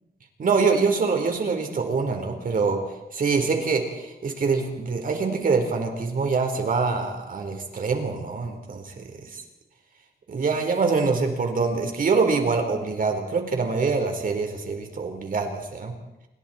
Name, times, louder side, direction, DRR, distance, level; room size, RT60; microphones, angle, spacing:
voice 1, 0.4-2.8 3.1-9.4 10.3-15.9, right 4 dB, 55° right, 4 dB, 4.4 m, -25 dB
28.5 x 25.0 x 4.5 m, 0.93 s
wide cardioid pair, 140°, 17 cm